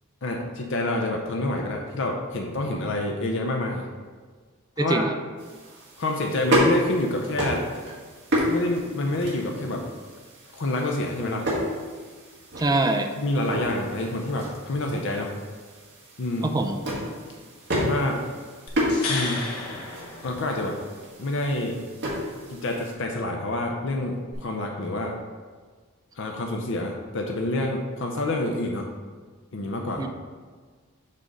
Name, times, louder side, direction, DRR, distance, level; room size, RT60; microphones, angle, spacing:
voice 1, 0.2-3.9 4.8-5.1 6.0-7.6 8.5-9.8 10.5-11.4 13.2-15.3 16.2-16.5 17.7-18.2 19.1-19.4 20.2-20.8 21.2-21.8 22.5-25.1 26.2-28.9 29.5-30.1, left 2 dB, 60° left, 1 dB, 0.6 m, -27 dB
voice 2, 4.8-5.2 12.6-13.1 16.4-16.8 30.0-30.1, right 2 dB, 20° right, 4 dB, 0.4 m, -23 dB
sound 1, 5.4-22.9, equal, 55° right, 1.9 m, -31 dB
sound 2, 18.7-20.9 24.3-24.4, left 3 dB, 90° left, 1.0 m, -33 dB
6.5 x 3.7 x 5.3 m, 1.5 s
head